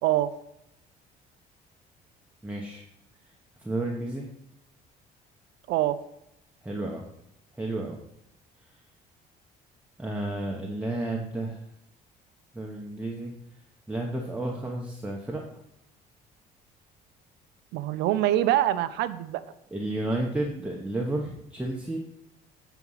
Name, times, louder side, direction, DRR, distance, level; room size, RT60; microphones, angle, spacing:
voice 1, 2.4-2.8 3.6-4.3 6.6-7.1 7.5-8.0 10.0-11.6 12.5-13.3 13.9-15.4 19.7-22.0, right 2 dB, 5° right, -1 dB, 1.1 m, -31 dB
voice 2, 17.7-19.4, right 13 dB, 85° right, 13 dB, 0.6 m, -24 dB
8.0 x 4.5 x 5.6 m, 0.81 s
cardioid pair, 110°, 17 cm